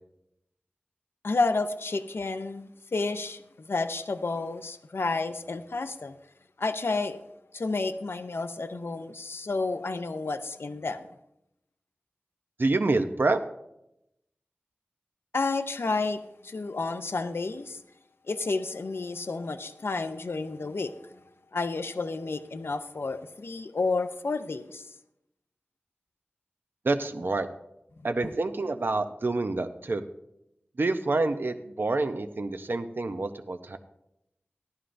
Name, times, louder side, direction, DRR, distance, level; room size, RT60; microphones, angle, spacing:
voice 1, 1.2-6.1 6.6-7.2 7.5-11.1 15.3-17.8 18.3-21.2 21.5-24.8, left 3 dB, 75° left, 0.5 m, -31 dB
voice 2, 12.6-13.4 26.8-27.5 28.0-30.0 30.8-33.8, right 3 dB, 60° right, 0.6 m, -27 dB
14.5 x 11.0 x 2.6 m
wide cardioid pair, 60°, 4 cm